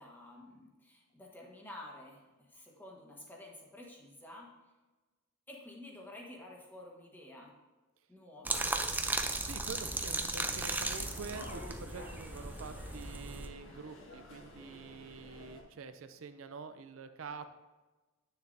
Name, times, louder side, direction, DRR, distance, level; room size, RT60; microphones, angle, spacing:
voice 1, 0.0-4.5 5.5-7.5 8.1-8.7, left 1 dB, 10° left, -2 dB, 1.4 m, -51 dB
sound 1, 8.4-13.5, right 2 dB, 10° right, 0.4 m, -36 dB
voice 2, 9.4-17.5, right 5 dB, 80° right, 10 dB, 0.5 m, -46 dB
London Underground Arriving A, 9.5-15.6, left 1 dB, 70° left, 1.6 m, -51 dB
9.3 x 6.6 x 2.7 m, 1.2 s
head